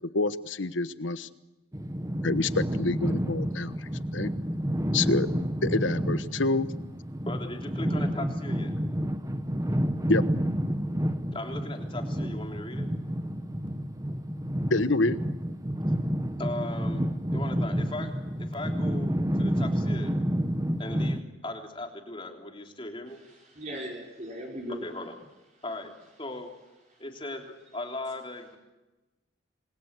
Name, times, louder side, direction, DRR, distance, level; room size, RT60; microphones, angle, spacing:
voice 1, 0.1-1.3 2.2-3.7 4.1-4.3 4.9-5.3 5.6-6.7 10.1-10.2 14.7-15.2, left 2 dB, 70° left, 1.2 m, -27 dB
sound 1, 1.7-21.2, equal, 15° right, 1.2 m, -29 dB
voice 2, 7.3-8.7 11.3-12.9 16.4-17.0 17.3-18.1 18.4-20.1 20.8-23.2 24.8-25.1 25.6-25.9 26.2-26.5 27.0-28.6, left 2 dB, 25° left, 3.4 m, -38 dB
voice 3, 23.1-24.8 26.9-27.0, equal, 35° right, 4.7 m, -39 dB
28.5 x 22.0 x 8.3 m
head